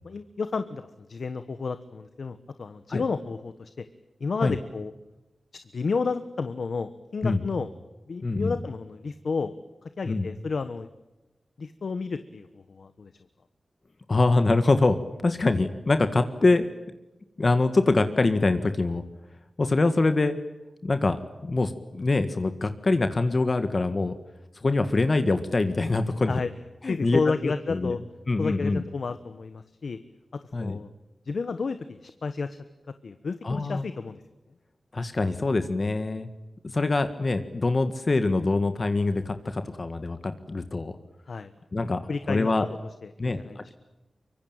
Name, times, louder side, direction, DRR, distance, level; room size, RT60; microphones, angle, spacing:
voice 1, 0.0-3.8 4.2-4.9 5.7-7.7 8.1-9.5 10.0-10.9 11.6-13.1 26.3-26.5 26.9-28.0 28.4-30.0 30.6-30.9 31.2-32.6 33.0-34.2 41.3-41.5 42.1-42.7 43.0-43.6, left 4 dB, 70° left, 11 dB, 1.2 m, -31 dB
voice 2, 8.2-8.5 10.1-10.3 14.1-15.0 15.2-16.7 17.4-19.0 19.6-20.4 20.8-21.2 21.4-24.2 24.6-26.4 26.8-28.0 28.3-28.8 30.5-30.8 33.4-33.9 34.9-36.3 36.7-41.0 41.7-42.0 42.3-42.7 43.2-43.7, left 3 dB, 45° left, 9 dB, 1.7 m, -24 dB
24.5 x 24.0 x 8.9 m, 1.0 s
wide cardioid pair, 105°, 0 cm